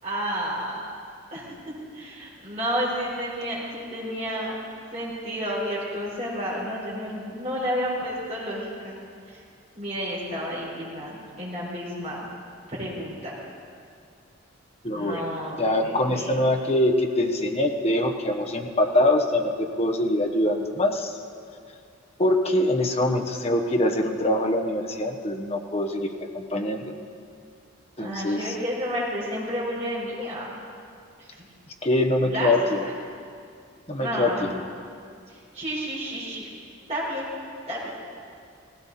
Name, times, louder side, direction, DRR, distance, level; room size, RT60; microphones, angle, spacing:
voice 1, 0.0-0.8 1.3-1.5 1.9-4.6 4.9-8.9 9.3-9.4 9.7-12.2 12.7-13.3 14.9-16.3 28.0-30.5 31.2-31.5 32.2-32.5 32.8-32.9 34.0-34.4 35.3-36.5 36.9-37.3 37.7-37.9, equal, 30° right, -6 dB, 4.7 m, -31 dB
voice 2, 14.8-15.3 15.6-21.2 22.2-26.9 28.0-28.5 31.8-32.9 33.9-34.6, left 1 dB, 30° left, 4 dB, 1.0 m, -24 dB
18.0 x 16.0 x 4.2 m, 2.3 s
head